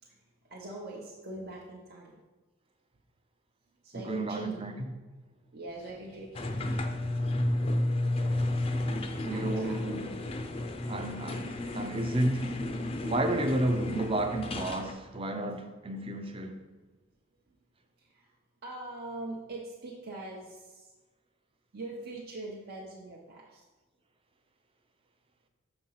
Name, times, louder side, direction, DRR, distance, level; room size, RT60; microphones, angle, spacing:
voice 1, 0.0-2.1 3.8-4.6 5.5-6.9 9.3-9.9 11.3-11.8 17.5-17.6 18.0-18.3 18.6-20.9 21.7-23.6, right 2 dB, 50° right, 0.9 m, -43 dB
voice 2, 3.9-4.9 9.2-10.0 10.9-12.5 13.0-16.6, right 1 dB, 25° right, 0.6 m, -31 dB
sound 1, 6.3-14.9, left 1 dB, 30° left, 0.5 m, -32 dB
6.8 x 4.4 x 5.6 m
head